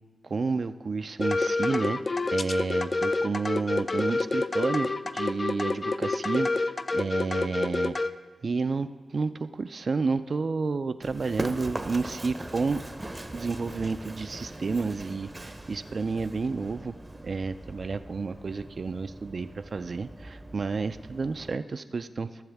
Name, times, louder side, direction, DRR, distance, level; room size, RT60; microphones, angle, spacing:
voice 1, 0.2-2.0 2.3-8.1 8.4-12.8 13.3-16.9 17.2-22.4, right 4 dB, 55° right, 10 dB, 0.4 m, -30 dB
sound 1, 1.2-8.1, left 3 dB, 40° left, 0.4 m, -28 dB
Run, 11.0-21.5, right 1 dB, 20° right, 0.7 m, -41 dB
16.5 x 7.1 x 3.5 m, 1.3 s
cardioid pair, 55°, 0 cm